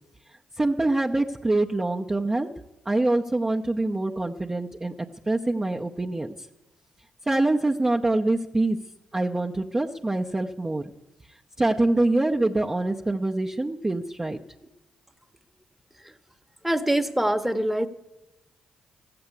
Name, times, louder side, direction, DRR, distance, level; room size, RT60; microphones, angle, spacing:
voice 1, 0.6-2.5 2.9-6.3 7.3-8.8 9.1-10.8 11.6-14.7, right 2 dB, 25° right, 0 dB, 0.8 m, -25 dB
voice 2, 16.6-17.9, right 1 dB, 5° right, 7 dB, 1.1 m, -24 dB
14.0 x 7.8 x 8.3 m, 0.99 s
supercardioid pair, 50°, 2 cm